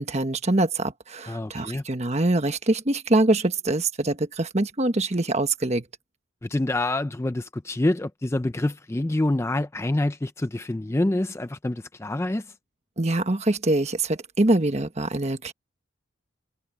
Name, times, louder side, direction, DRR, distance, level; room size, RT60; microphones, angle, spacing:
voice 1, 0.0-5.8 13.0-15.5, right 2 dB, 35° right, 1.3 m, -24 dB
voice 2, 1.3-1.8 6.4-12.5, left 1 dB, 15° left, 0.4 m, -26 dB
head